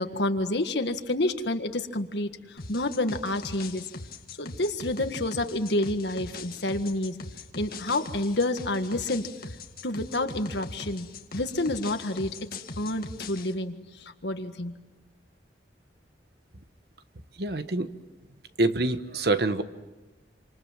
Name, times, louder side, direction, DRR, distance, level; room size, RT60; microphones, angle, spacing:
voice 1, 0.0-3.9 4.4-7.2 7.6-9.3 9.8-11.1 11.3-12.3 12.8-14.7, left 1 dB, 70° left, 7 dB, 1.8 m, -29 dB
sound 1, 2.6-13.5, left 3 dB, 55° left, 2.0 m, -41 dB
voice 2, 17.4-17.9 18.6-19.6, right 2 dB, 60° right, 10 dB, 1.2 m, -25 dB
28.0 x 26.5 x 7.5 m, 1.1 s
head